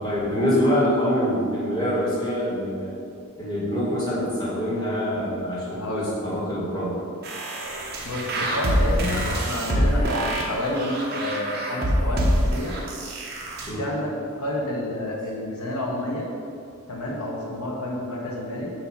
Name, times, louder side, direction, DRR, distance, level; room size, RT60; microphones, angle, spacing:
voice 1, 0.0-2.9 3.4-6.9 13.6-13.8, equal, 20° left, -7 dB, 1.6 m, -25 dB
voice 2, 5.7-6.1 8.0-12.8 13.8-14.1 14.4-16.3 16.9-18.7, left 1 dB, 85° left, -2 dB, 1.1 m, -29 dB
sound 1, 7.2-13.7, equal, 45° right, 1.0 m, -25 dB
7.5 x 2.8 x 6.0 m, 2.3 s
head